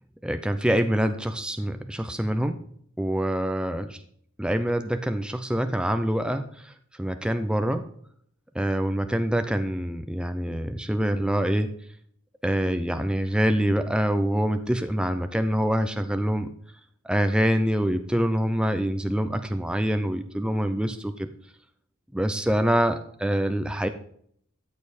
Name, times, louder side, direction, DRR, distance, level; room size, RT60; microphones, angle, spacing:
voice 1, 0.2-2.6 3.0-4.0 4.4-7.9 8.5-11.7 12.4-16.5 17.0-21.3 22.1-23.9, equal, 5° right, 8 dB, 0.6 m, -25 dB
13.5 x 7.2 x 4.2 m, 0.64 s
head